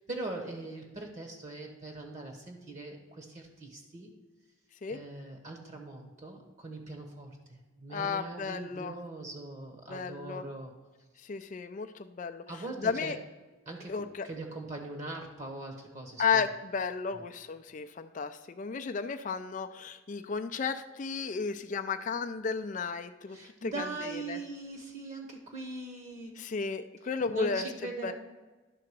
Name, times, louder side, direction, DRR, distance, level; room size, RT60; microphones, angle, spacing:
voice 1, 0.1-4.1 4.9-10.7 12.5-13.2 13.7-16.4 17.1-17.2 23.3-26.4 27.2-28.1, right 2 dB, 35° right, 3 dB, 1.0 m, -41 dB
voice 2, 7.9-8.9 9.9-10.4 11.2-12.4 12.8-13.2 13.9-14.3 16.2-23.4 23.6-24.4 26.4-27.7 28.0-28.1, left 5 dB, 35° left, 8 dB, 0.3 m, -33 dB
11.0 x 3.8 x 6.7 m, 1.2 s
head